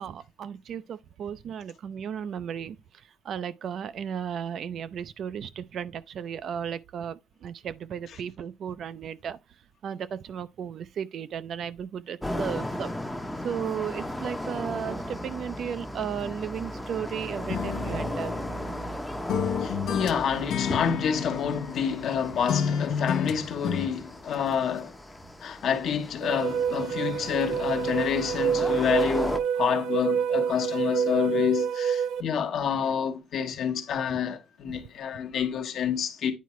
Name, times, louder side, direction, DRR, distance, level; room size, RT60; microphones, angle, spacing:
voice 1, 0.0-2.8 3.2-9.4 9.8-12.9 13.4-18.3 34.7-34.8, right 8 dB, 50° right, 0.4 m, -35 dB
sound 1, 12.2-29.4, left 1 dB, 5° left, 0.6 m, -36 dB
sound 2, 17.5-19.0 19.3-22.2 22.5-23.9, left 7 dB, 85° left, 0.8 m, -30 dB
voice 2, 19.6-25.0 25.4-36.3, left 7 dB, 60° left, 1.0 m, -28 dB
sound 3, 26.2-32.2, right 7 dB, 80° right, 0.7 m, -27 dB
9.3 x 4.7 x 3.1 m
cardioid pair, 165°, 0 cm